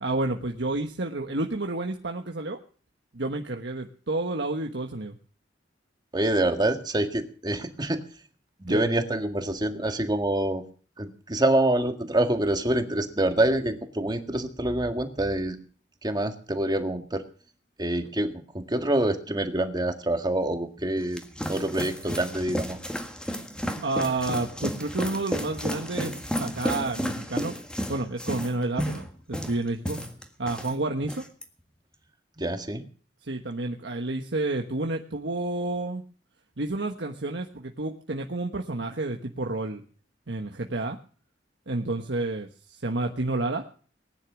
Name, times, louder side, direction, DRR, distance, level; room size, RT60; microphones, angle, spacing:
voice 1, 0.0-2.6 3.1-5.2 8.7-8.8 23.8-26.1 26.4-27.5 27.9-30.0 30.4-31.2 33.2-36.0 36.6-39.8 40.3-41.0 41.7-43.6, right 2 dB, 70° right, 2 dB, 1.3 m, -30 dB
voice 2, 6.1-8.0 8.6-10.6 11.0-15.6 16.0-17.2 17.8-21.2 21.5-22.8 32.4-32.8, right 1 dB, 25° right, 6 dB, 1.8 m, -26 dB
sound 1, 20.8-30.7 31.0-31.4, equal, 5° left, 1.7 m, -32 dB
19.5 x 10.5 x 6.2 m, 0.42 s
head